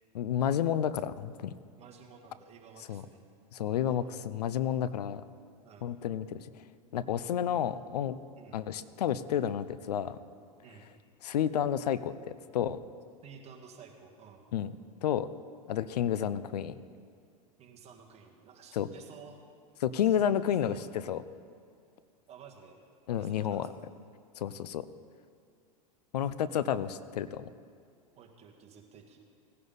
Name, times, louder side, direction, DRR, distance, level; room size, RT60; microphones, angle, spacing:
voice 1, 0.1-1.5 2.9-3.0 3.5-5.2 5.8-6.5 6.9-8.2 8.5-10.2 11.2-12.8 14.5-14.7 15.0-15.3 15.7-16.8 18.7-18.9 19.8-21.2 23.1-23.7 24.4-24.9 26.1-27.5, left 9 dB, 85° left, 15 dB, 0.6 m, -30 dB
voice 2, 1.8-3.3 3.6-4.1 5.6-6.0 8.4-8.6 10.6-10.9 13.2-14.4 17.6-19.4 20.0-20.2 20.4-20.9 22.3-22.8 23.2-23.8 28.1-29.2, right 6 dB, 30° right, 2 dB, 1.8 m, -53 dB
17.0 x 11.0 x 4.0 m, 2.3 s
hypercardioid pair, 115°, 20 cm